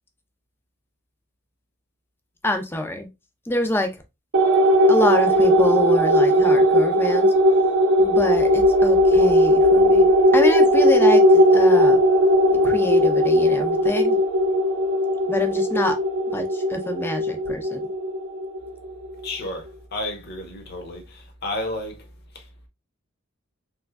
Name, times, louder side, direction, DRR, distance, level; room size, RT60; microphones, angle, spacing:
voice 1, 2.4-3.1 3.5-3.9 4.9-7.3 8.0-10.1 10.3-12.0 12.6-14.2 15.3-16.0 16.3-17.8, left 1 dB, 10° left, 0.4 m, -26 dB
sound 1, 4.3-19.1, equal, 55° right, 0.6 m, -18 dB
voice 2, 19.2-22.1 22.3-22.5, left 1 dB, 45° left, 0.8 m, -32 dB
3.5 x 3.0 x 2.2 m
head